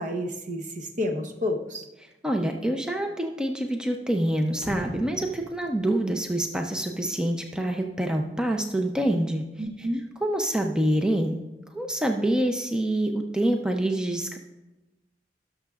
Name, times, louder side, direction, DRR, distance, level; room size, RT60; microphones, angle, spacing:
voice 1, 0.0-1.9 9.6-10.0, left 1 dB, 45° right, 4 dB, 1.0 m, -30 dB
voice 2, 2.2-9.4 10.2-11.4 11.7-14.4, right 1 dB, 5° right, 3 dB, 0.5 m, -26 dB
sound 1, 4.6-7.1, left 1 dB, 35° left, 0.8 m, -41 dB
17.5 x 6.6 x 2.4 m, 1.0 s
head